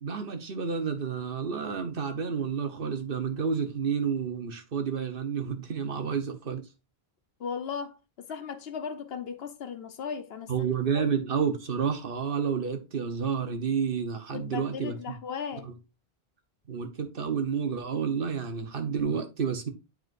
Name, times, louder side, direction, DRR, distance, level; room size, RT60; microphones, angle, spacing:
voice 1, 0.0-6.6 10.5-15.2 15.6-15.7 16.7-19.7, right 6 dB, 60° right, 1.2 m, -30 dB
voice 2, 7.4-8.0 8.3-10.7 14.3-15.7, left 6 dB, 75° left, 1.0 m, -36 dB
8.7 x 4.6 x 2.5 m
omnidirectional pair, 1.0 m